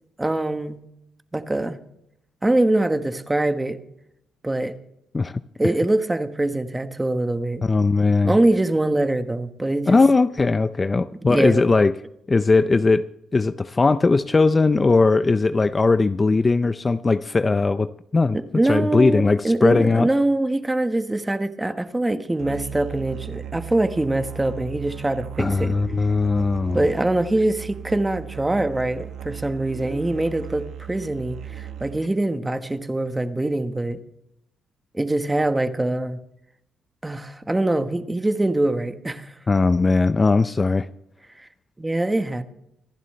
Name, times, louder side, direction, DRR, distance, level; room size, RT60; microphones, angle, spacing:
voice 1, 0.2-0.8 1.3-1.8 2.4-3.8 4.4-4.7 5.6-7.6 8.2-10.0 11.3-11.6 18.3-25.8 26.7-34.0 34.9-36.2 37.0-39.3 41.4-41.5 41.8-42.4, right 2 dB, 15° right, 9 dB, 1.3 m, -23 dB
voice 2, 7.6-8.4 9.9-11.9 12.3-18.4 18.7-20.1 25.4-26.9 39.5-40.9, left 3 dB, 25° left, 13 dB, 0.5 m, -19 dB
Musical instrument, 22.4-32.2, right 9 dB, 75° right, 1.1 m, -37 dB
26.0 x 11.0 x 3.3 m, 0.80 s
cardioid pair, 90°, 0 cm